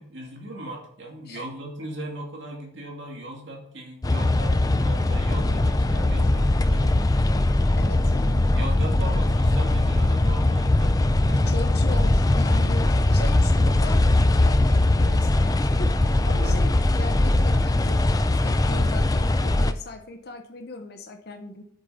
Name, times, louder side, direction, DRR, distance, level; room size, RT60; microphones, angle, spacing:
voice 1, 0.0-7.0 7.8-10.9 11.3-11.5 11.9-12.0 12.5-12.6 16.3-16.7, right 1 dB, 60° right, 0 dB, 2.6 m, -38 dB
sound 1, 4.0-19.7, left 2 dB, 20° left, 0.4 m, -21 dB
voice 2, 7.8-8.4 11.5-18.0 18.3-21.6, left 2 dB, 50° left, 4 dB, 1.1 m, -38 dB
8.3 x 7.4 x 5.2 m, 0.67 s
head